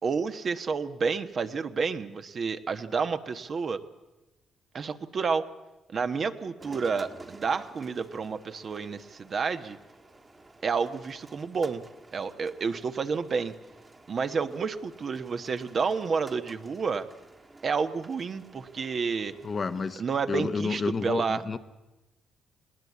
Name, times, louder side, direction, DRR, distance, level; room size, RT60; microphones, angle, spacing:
voice 1, 0.0-3.8 4.7-5.5 5.9-9.8 10.6-11.8 12.1-13.5 14.1-17.1 17.6-19.3 20.0-21.4, right 5 dB, 45° right, 9 dB, 1.1 m, -30 dB
sound 1, 6.6-20.0, right 2 dB, 25° right, 1.6 m, -52 dB
voice 2, 19.4-20.0 20.3-21.6, left 4 dB, 35° left, 11 dB, 0.9 m, -30 dB
19.0 x 18.5 x 8.5 m, 1.0 s
cardioid pair, 90°, 0 cm